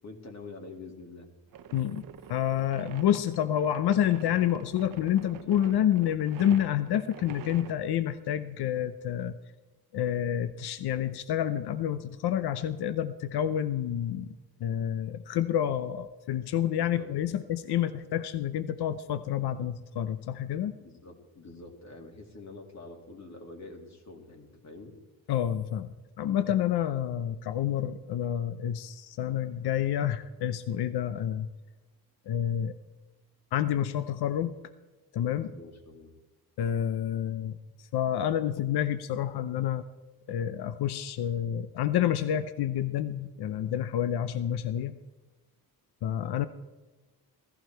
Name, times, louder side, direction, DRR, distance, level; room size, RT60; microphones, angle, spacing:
voice 1, 0.0-1.3 16.8-17.1 20.8-25.0 35.5-36.1, left 3 dB, 45° left, 3 dB, 2.4 m, -46 dB
sound 1, 1.5-7.7, right 9 dB, 60° right, 0.8 m, -46 dB
voice 2, 1.7-9.4 9.9-20.8 25.3-31.5 32.3-32.7 33.5-34.5 35.1-35.5 36.6-39.8 40.3-45.0 46.0-46.5, left 10 dB, 80° left, 12 dB, 0.7 m, -29 dB
16.5 x 14.5 x 4.5 m, 1.2 s
wide cardioid pair, 140°, 38 cm